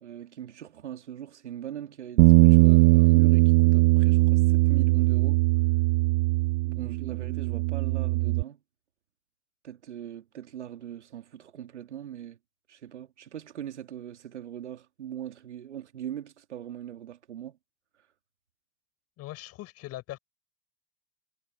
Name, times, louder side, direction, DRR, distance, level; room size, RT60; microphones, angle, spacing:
voice 1, 0.0-5.4 6.6-8.6 9.6-12.4 12.7-17.6, right 10 dB, 85° right, 2.4 m, -40 dB
Bass guitar, 2.2-8.4, right 25 dB, 60° right, 1.2 m, -20 dB
voice 2, 19.2-20.2, left 16 dB, 45° left, 7.0 m, -40 dB
hypercardioid pair, 90°, 34 cm